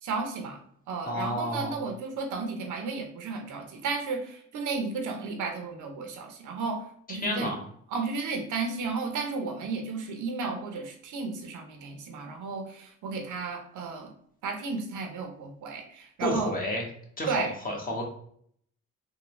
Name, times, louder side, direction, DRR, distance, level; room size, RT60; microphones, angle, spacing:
voice 1, 0.0-0.6 0.9-7.5 7.9-14.1 14.4-16.5 17.3-17.5, right 4 dB, 75° right, 4 dB, 0.8 m, -33 dB
voice 2, 1.0-1.8 7.1-7.6 16.2-16.9 17.2-18.0, equal, 30° left, 0 dB, 1.1 m, -31 dB
3.6 x 2.3 x 3.1 m, 0.63 s
cardioid pair, 90°, 30 cm